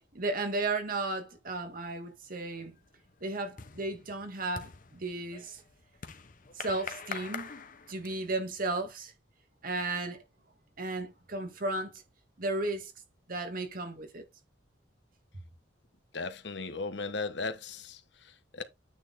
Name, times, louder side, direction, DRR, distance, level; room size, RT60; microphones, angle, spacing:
voice 1, 0.1-2.7 3.2-5.6 6.5-7.5 7.9-9.1 9.6-10.2 10.8-12.0 12.4-12.9 13.3-14.2, right 2 dB, 50° right, 1.7 m, -34 dB
sound 1, 1.9-2.3 2.6-8.4, left 6 dB, 45° left, 0.9 m, -45 dB
voice 2, 16.1-18.6, left 3 dB, 65° left, 1.1 m, -37 dB
9.2 x 4.1 x 4.0 m
head